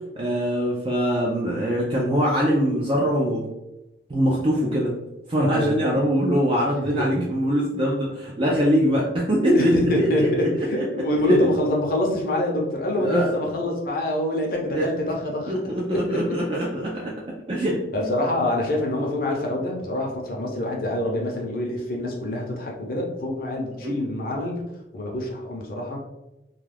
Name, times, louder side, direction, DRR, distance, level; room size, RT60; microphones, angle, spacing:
voice 1, 0.2-3.4 4.1-5.0 5.3-10.9 11.3-11.5 13.0-13.3 14.7-14.9 15.5-17.1 17.5-18.1 23.8-23.9, equal, 30° right, -4 dB, 0.4 m, -23 dB
voice 2, 9.5-15.6 15.9-16.2 17.9-24.6 24.9-26.0, left 1 dB, 55° left, 0 dB, 0.6 m, -25 dB
2.3 x 2.3 x 3.2 m, 0.94 s
head